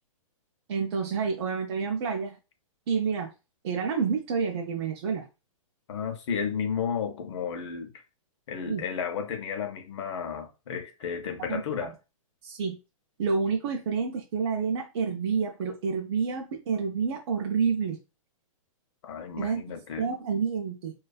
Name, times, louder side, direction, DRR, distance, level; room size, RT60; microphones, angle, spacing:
voice 1, 0.7-2.4 2.9-3.3 3.6-5.3 8.6-8.8 11.5-11.9 12.4-12.8 13.2-18.0 19.4-19.6 20.0-20.9, right 5 dB, 50° right, 0.4 m, -29 dB
voice 2, 5.9-7.9 8.5-11.9 19.0-20.1, left 7 dB, 55° left, 0.6 m, -33 dB
2.5 x 2.2 x 2.2 m
hypercardioid pair, 155°, 18 cm